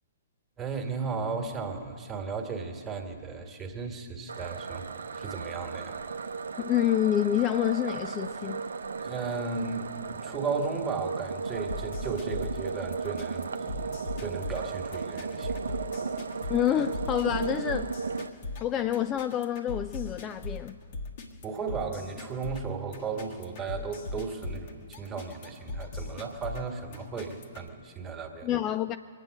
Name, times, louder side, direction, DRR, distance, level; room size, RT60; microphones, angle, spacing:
voice 1, 0.6-6.0 9.0-15.8 21.4-28.5, right 5 dB, 15° right, 1.8 m, -35 dB
sound 1, 4.3-18.3, right 5 dB, 65° right, 0.7 m, -35 dB
voice 2, 6.6-8.7 16.5-18.0 18.6-20.8 28.4-29.0, left 11 dB, 20° left, 0.3 m, -28 dB
sound 2, 11.7-27.7, left 3 dB, 45° left, 1.6 m, -39 dB
23.5 x 9.0 x 6.5 m
figure-of-eight pair, 120°, 0 cm